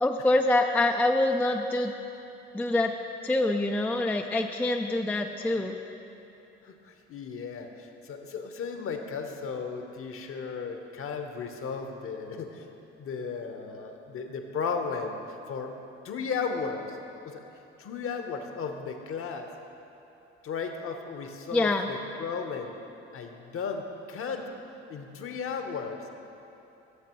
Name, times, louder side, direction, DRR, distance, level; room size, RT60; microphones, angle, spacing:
voice 1, 0.0-1.9 2.5-2.9 3.2-5.8 21.5-21.9, left 2 dB, 5° left, 4 dB, 0.4 m, -25 dB
voice 2, 6.6-12.7 13.0-15.2 15.5-15.7 16.0-17.0 17.2-17.4 17.8-19.5 20.4-22.7 23.1-24.4 24.9-26.0, left 5 dB, 45° left, 5 dB, 1.0 m, -35 dB
13.0 x 7.4 x 3.0 m, 3.0 s
hypercardioid pair, 55°, 30 cm